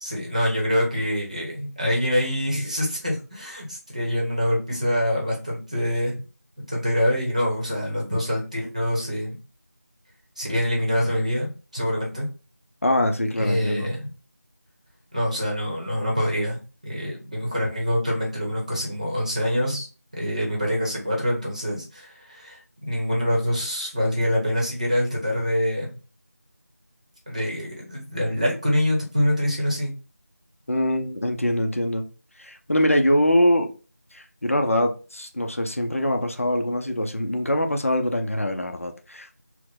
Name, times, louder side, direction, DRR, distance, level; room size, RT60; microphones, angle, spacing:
voice 1, 0.0-6.2 6.7-9.4 10.4-12.3 13.4-14.1 15.1-19.9 20.1-26.0 27.3-29.9, equal, 25° right, 0.9 m, -25 dB
voice 2, 12.8-13.9 30.7-32.1 32.4-33.7 34.1-39.4, left 1 dB, 55° left, 0.6 m, -23 dB
4.4 x 2.1 x 3.9 m
figure-of-eight pair, 180°, 9 cm